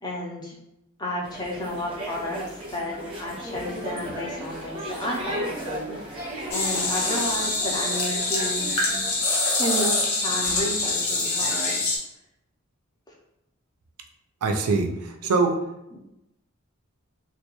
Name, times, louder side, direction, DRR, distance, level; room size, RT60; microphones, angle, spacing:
voice 1, 0.0-0.5 1.0-2.4 2.7-8.7 9.4-11.8 15.9-16.1, equal, 20° left, -3 dB, 0.4 m, -32 dB
sound 1, 1.2-9.3, equal, 20° right, 0.7 m, -35 dB
sound 2, 6.5-12.0, left 2 dB, 80° left, 0.7 m, -25 dB
voice 2, 14.4-15.6, right 3 dB, 85° right, 4 dB, 0.4 m, -23 dB
2.3 x 2.2 x 2.9 m, 0.86 s
head